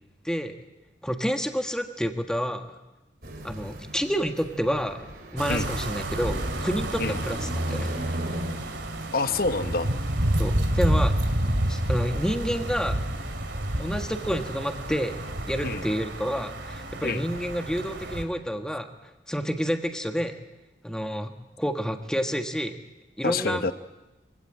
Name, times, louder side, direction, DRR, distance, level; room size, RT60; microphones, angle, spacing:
voice 1, 1.0-2.7 3.4-7.9 10.4-11.1 11.7-13.0 13.8-15.2 15.5-18.9 19.3-20.3 20.8-21.3 21.6-22.8 23.2-23.6, equal, 5° left, 5 dB, 1.5 m, -29 dB
sound 1, 3.2-8.5, equal, 50° right, 3.5 m, -35 dB
sound 2, 5.4-18.2, right 1 dB, 70° right, 2.4 m, -29 dB
voice 2, 9.1-9.9 15.6-15.8 17.0-17.2 23.2-23.7, left 3 dB, 50° left, 10 dB, 1.0 m, -27 dB
24.5 x 16.5 x 8.9 m, 1.0 s
head